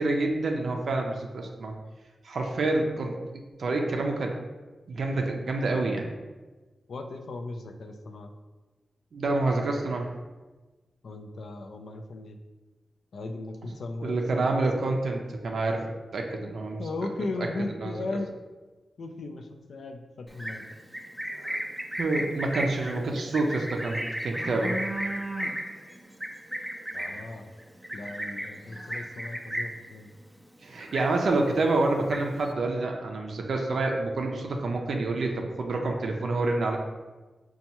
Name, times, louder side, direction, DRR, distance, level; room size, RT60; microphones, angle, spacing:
voice 1, 0.0-1.7 2.2-3.1 3.6-4.3 4.9-6.1 9.1-10.1 14.0-15.8 16.1-16.8 17.8-17.9 21.4-21.6 22.0-24.8 30.6-36.8, right 2 dB, 75° right, 1 dB, 0.4 m, -27 dB
voice 2, 6.9-8.3 11.0-12.4 13.1-14.5 16.8-18.3 19.0-20.6 26.9-27.5 27.9-30.1, left 2 dB, 70° left, 5 dB, 0.3 m, -37 dB
Livestock farm animals working animals, 20.3-29.9 30.2-30.5 30.8-31.5 31.8-32.5, right 1 dB, 5° right, 0.4 m, -34 dB
5.3 x 2.3 x 2.9 m, 1.2 s
cardioid pair, 85°, 0 cm